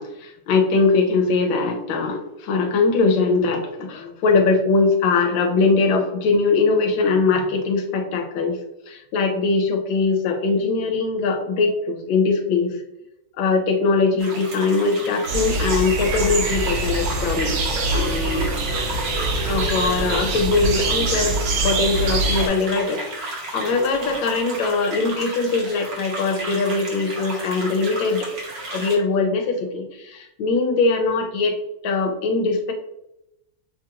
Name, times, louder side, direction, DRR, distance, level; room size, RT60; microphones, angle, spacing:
voice 1, 0.0-12.8 13.4-17.6 17.9-18.5 19.4-21.4 21.6-28.3 28.7-31.6 31.8-32.7, left 4 dB, 75° left, 3 dB, 1.5 m, -21 dB
sound 1, 14.2-29.0, right 2 dB, 60° right, 1.6 m, -33 dB
sound 2, 15.3-22.5, right 2 dB, 80° right, 1.7 m, -24 dB
sound 3, 17.2-21.3, right 1 dB, 55° left, 0.8 m, -34 dB
6.1 x 2.4 x 2.9 m, 0.87 s
omnidirectional pair, 2.2 m